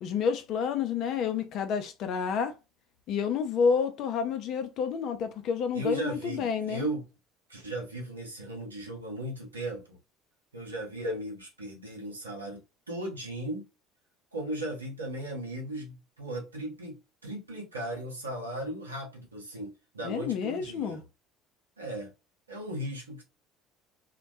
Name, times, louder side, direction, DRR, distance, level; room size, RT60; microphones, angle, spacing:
voice 1, 0.0-2.5 3.1-6.9 20.0-21.0, left 6 dB, 55° left, 0.5 m, -29 dB
voice 2, 5.7-7.1 7.5-10.0 10.5-13.7 14.3-21.0 21.8-22.1 22.5-23.2, right 1 dB, 90° right, 0.7 m, -37 dB
2.1 x 2.1 x 2.7 m
figure-of-eight pair, 60°, 0 cm